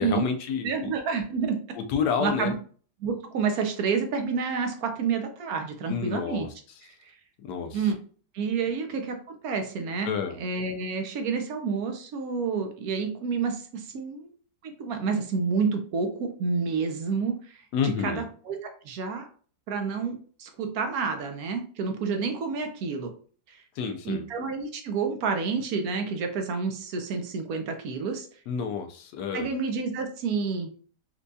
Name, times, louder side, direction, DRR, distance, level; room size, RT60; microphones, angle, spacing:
voice 1, 0.0-0.9 1.8-2.5 5.9-6.5 7.4-7.7 10.0-10.3 17.7-18.2 23.8-24.2 28.5-29.5, left 6 dB, 85° left, 5 dB, 1.2 m, -29 dB
voice 2, 0.6-1.6 2.2-2.5 3.0-6.5 6.8-6.9 7.7-8.0 8.3-14.3 14.6-17.6 17.8-19.3 19.7-23.1 23.5-23.6 24.0-28.3 29.3-30.7, right 5 dB, 70° right, 5 dB, 1.0 m, -29 dB
4.3 x 2.3 x 2.6 m, 0.43 s
omnidirectional pair, 1.7 m